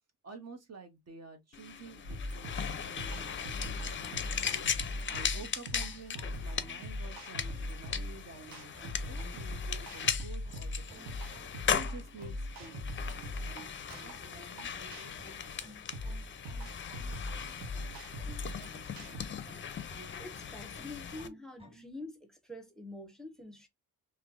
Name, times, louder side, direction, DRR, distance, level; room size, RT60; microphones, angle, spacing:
voice 1, 0.2-4.1 5.1-11.2 11.7-12.9 14.0-14.7 15.0-15.8, right 4 dB, 45° right, 0.8 m, -51 dB
sound 1, 1.5-21.3, left 7 dB, 35° left, 0.5 m, -38 dB
sound 2, 2.0-19.3, left 1 dB, 75° right, 1.1 m, -40 dB
sound 3, 3.2-21.9, right 2 dB, 15° right, 1.7 m, -54 dB
voice 2, 20.1-23.7, left 2 dB, ahead, 1.0 m, -46 dB
3.2 x 2.8 x 2.5 m
cardioid pair, 80°, 35 cm